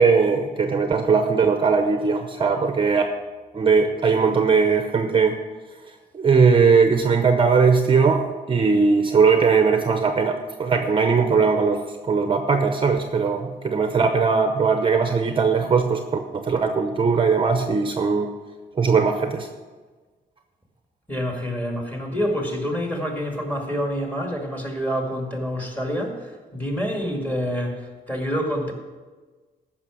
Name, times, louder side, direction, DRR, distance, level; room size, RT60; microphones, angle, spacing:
voice 1, 0.0-3.0 3.5-5.3 6.1-18.3 18.8-19.5, right 5 dB, 30° right, 6 dB, 0.7 m, -19 dB
voice 2, 21.1-28.7, equal, 10° left, 1 dB, 2.2 m, -27 dB
15.0 x 6.0 x 6.2 m, 1.4 s
cardioid pair, 140°, 17 cm